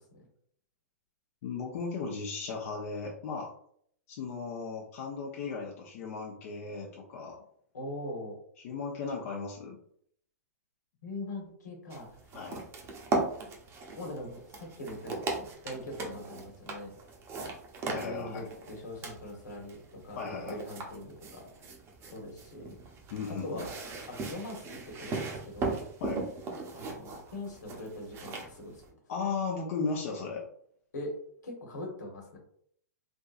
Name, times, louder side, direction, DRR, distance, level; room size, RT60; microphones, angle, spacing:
voice 1, 1.4-3.5 4.1-7.4 8.6-9.8 12.3-12.6 17.9-18.5 20.2-20.6 23.1-23.7 26.0-26.3 29.1-30.4, left 4 dB, 55° left, -2 dB, 0.7 m, -36 dB
voice 2, 7.7-8.4 11.0-12.2 14.0-16.9 18.0-21.5 22.0-22.7 23.3-23.7 24.1-25.9 26.7-28.8 30.9-31.1 31.4-32.4, left 1 dB, 85° left, 0 dB, 1.4 m, -42 dB
sound 1, 11.9-28.9, right 3 dB, 25° right, 0.7 m, -38 dB
3.5 x 2.7 x 2.5 m, 0.64 s
hypercardioid pair, 125°, 9 cm